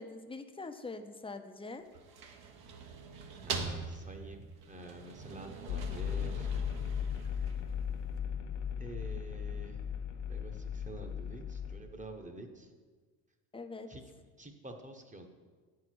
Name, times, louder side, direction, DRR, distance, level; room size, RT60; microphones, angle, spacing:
voice 1, 0.0-1.8 13.5-13.9, left 3 dB, 15° left, 7 dB, 0.7 m, -43 dB
sound 1, 1.8-7.8, right 4 dB, 60° right, 1.1 m, -43 dB
voice 2, 3.2-6.5 8.8-9.8 10.2-12.7 13.9-15.3, right 2 dB, 15° right, 5 dB, 1.1 m, -48 dB
sound 2, 5.7-11.8, left 8 dB, 85° left, 0.9 m, -37 dB
8.6 x 4.7 x 6.2 m, 1.4 s
supercardioid pair, 85°, 42 cm